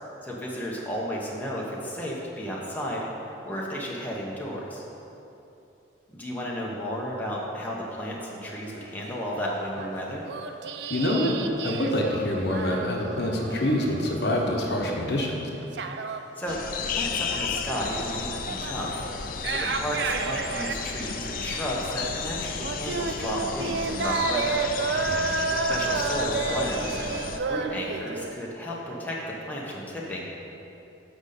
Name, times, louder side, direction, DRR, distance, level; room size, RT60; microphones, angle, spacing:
voice 1, 0.2-3.1 3.4-4.8 6.1-10.2 16.4-16.6 16.9-19.0 19.5-24.6 25.7-29.2 29.5-30.3, equal, 10° left, -4 dB, 0.9 m, -33 dB
sound 1, 8.4-8.8 9.0-14.8 15.2-28.3, right 4 dB, 65° right, 0.4 m, -32 dB
voice 2, 10.9-11.4 11.6-15.3 25.1-25.2, left 1 dB, 65° left, 0 dB, 0.9 m, -26 dB
sound 2, 16.5-27.4, left 6 dB, 45° left, 0.4 m, -33 dB
6.2 x 5.2 x 6.7 m, 2.9 s
head